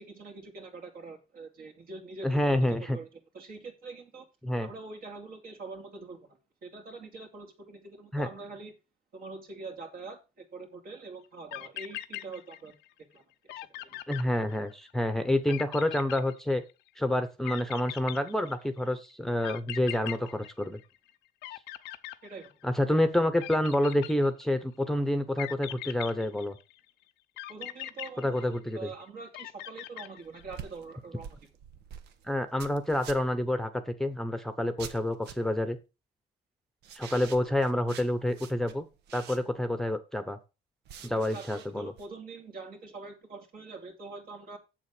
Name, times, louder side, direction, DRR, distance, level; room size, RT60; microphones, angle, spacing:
voice 1, 0.0-3.1 3.3-4.3 4.6-8.7 9.1-12.7 13.0-14.0 22.2-22.5 27.5-31.4 37.3-37.4 41.0-44.6, right 3 dB, 60° right, 2.7 m, -44 dB
voice 2, 2.2-3.0 4.4-4.7 8.1-8.3 14.1-16.6 17.0-20.8 22.6-26.6 28.2-28.9 32.2-35.8 36.9-38.9 39.1-40.4 41.0-41.9, left 1 dB, ahead, 1.0 m, -28 dB
sound 1, 11.2-11.3 11.5-12.9 13.2-13.3 13.5-14.9 15.5-16.9 17.4-18.8 19.4-21.1 21.4-22.8 23.4-24.6 25.4-26.8 27.4-28.9 29.3-30.6, left 15 dB, 90° left, 0.7 m, -41 dB
sound 2, 30.2-33.5 34.8-35.6 36.8-39.7 40.8-42.1, right 8 dB, 80° right, 1.2 m, -47 dB
7.6 x 7.2 x 5.0 m
cardioid pair, 110°, 17 cm